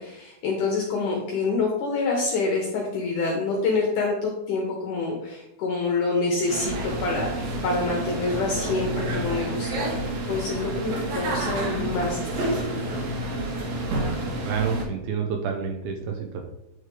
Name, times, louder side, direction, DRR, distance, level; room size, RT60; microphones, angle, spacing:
voice 1, 0.0-12.6, left 3 dB, 75° left, 0 dB, 1.9 m, -27 dB
sound 1, 6.5-14.8, right 1 dB, 60° right, 2.3 m, -29 dB
voice 2, 14.5-16.4, right 6 dB, 80° right, 3 dB, 2.2 m, -28 dB
9.0 x 4.8 x 3.3 m, 0.85 s
omnidirectional pair, 4.7 m